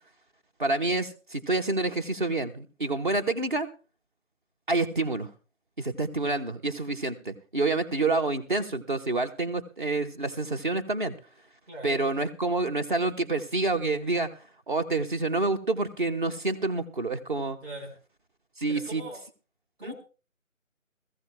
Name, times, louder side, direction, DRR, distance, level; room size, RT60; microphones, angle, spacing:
voice 1, 0.6-3.7 4.7-5.3 5.8-11.1 11.8-14.3 14.7-17.6 18.6-19.0 19.8-19.9, right 2 dB, 35° right, 7 dB, 1.1 m, -28 dB
voice 2, 11.7-12.0 17.6-17.9 18.7-19.2 19.8-20.0, right 1 dB, 50° right, 1 dB, 4.8 m, -41 dB
20.5 x 14.5 x 2.2 m, 0.33 s
figure-of-eight pair, 160°, 41 cm